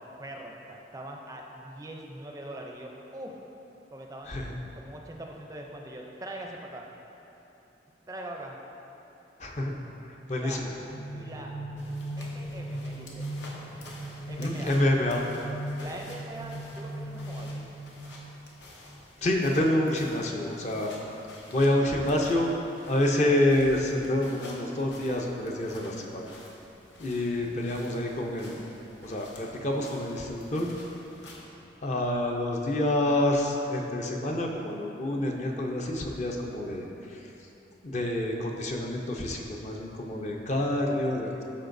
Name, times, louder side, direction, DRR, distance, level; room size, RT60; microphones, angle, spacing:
voice 1, 0.0-3.4 3.9-4.5 4.7-6.9 8.1-8.6 10.2-10.6 11.1-11.5 12.2-13.3 14.3-14.7 15.8-17.7, right 1 dB, 20° right, 0 dB, 0.4 m, -42 dB
voice 2, 4.3-4.6 9.4-9.7 10.0-10.7 14.4-15.2 19.2-20.9 21.5-22.5 22.9-26.2 27.0-28.6 29.0-30.7 31.8-37.2 37.8-41.4, left 1 dB, 40° left, 0 dB, 0.6 m, -27 dB
sound 1, 10.7-18.6, right 1 dB, 65° left, 1.3 m, -38 dB
sound 2, 11.8-31.4, left 1 dB, 80° left, 1.0 m, -50 dB
13.0 x 4.5 x 2.6 m, 3.0 s
head